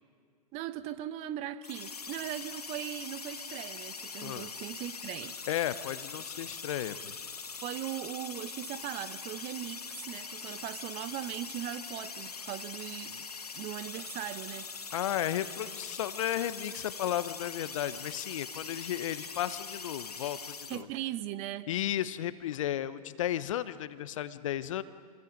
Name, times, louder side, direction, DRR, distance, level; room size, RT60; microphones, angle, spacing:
voice 1, 0.5-5.3 7.6-13.2 13.5-14.7 20.7-21.7, right 13 dB, 35° right, 13 dB, 1.1 m, -39 dB
sound 1, 1.6-20.8, left 5 dB, 85° left, 1.2 m, -42 dB
voice 2, 4.2-4.5 5.5-7.3 14.9-20.9 21.7-24.8, left 12 dB, 55° left, 15 dB, 1.0 m, -34 dB
27.5 x 23.0 x 5.4 m, 2.1 s
figure-of-eight pair, 110°, 19 cm